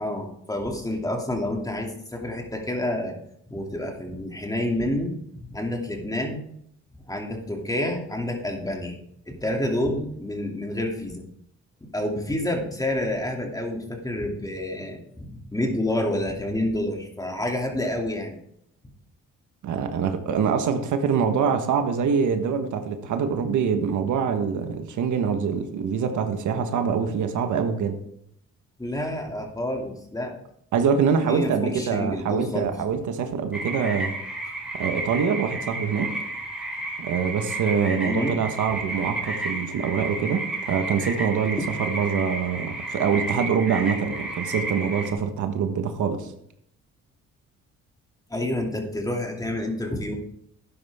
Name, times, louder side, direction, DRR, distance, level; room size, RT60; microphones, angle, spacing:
voice 1, 0.0-3.2 3.5-6.5 7.1-9.0 9.3-11.2 11.8-18.3 28.8-30.3 31.3-32.7 34.4-34.5 38.1-38.3 48.3-50.2, left 1 dB, 10° left, 1 dB, 2.8 m, -28 dB
voice 2, 19.6-28.0 30.7-34.1 34.8-36.1 37.0-46.3, right 6 dB, 75° right, 7 dB, 1.4 m, -24 dB
sound 1, 33.5-45.1, right 2 dB, 5° right, 4.3 m, -32 dB
12.0 x 10.0 x 3.6 m, 0.71 s
cardioid pair, 90°, 30 cm